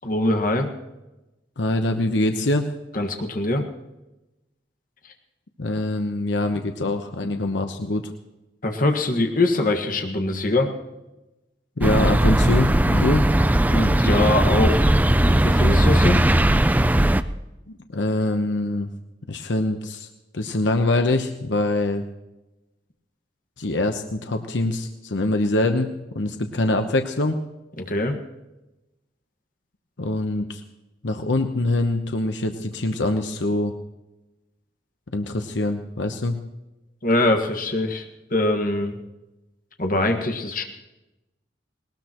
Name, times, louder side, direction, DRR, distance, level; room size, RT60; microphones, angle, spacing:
voice 1, 0.0-0.7 2.9-3.6 8.6-10.7 13.7-16.2 27.8-28.2 37.0-38.0 38.3-39.0 39.8-40.6, left 2 dB, 50° left, 4 dB, 1.7 m, -23 dB
voice 2, 1.6-2.7 5.6-8.0 11.8-13.3 17.9-18.9 19.3-20.1 20.3-22.0 23.6-27.4 30.0-30.6 31.0-33.7 35.1-36.4, left 2 dB, 80° left, 6 dB, 1.0 m, -24 dB
sound 1, 11.8-17.2, right 1 dB, 10° right, 0.4 m, -18 dB
20.0 x 19.5 x 3.0 m, 1.0 s
head